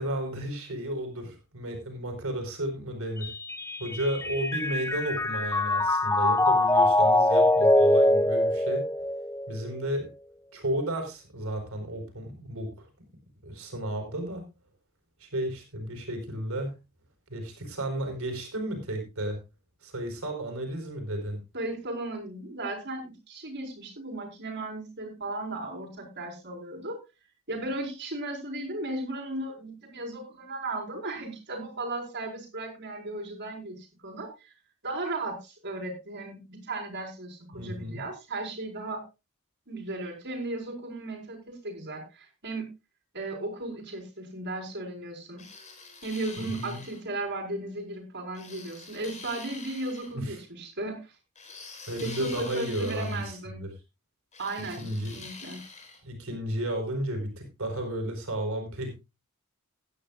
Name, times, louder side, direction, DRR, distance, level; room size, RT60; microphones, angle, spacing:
voice 1, 0.0-3.3 3.8-8.8 9.5-10.1 10.5-12.9 13.4-14.4 15.2-16.7 17.3-19.4 19.8-21.4 37.5-38.0 46.4-46.8 50.1-50.4 51.9-53.7 54.8-55.1 56.0-58.9, right 1 dB, 70° right, 4 dB, 4.4 m, -33 dB
Mallet percussion, 3.2-9.7, left 1 dB, 15° left, 0.7 m, -23 dB
voice 2, 21.5-27.0 27.5-34.5 34.8-39.0 39.7-42.7 43.1-45.4 46.0-51.0 52.0-53.6 54.4-54.8 55.1-55.6, right 2 dB, 50° right, 1 dB, 4.8 m, -36 dB
sound 1, 45.4-47.0 48.3-50.1 51.4-53.4 54.3-56.0, left 4 dB, 35° left, 3.9 m, -45 dB
17.5 x 11.0 x 2.4 m, 0.26 s
head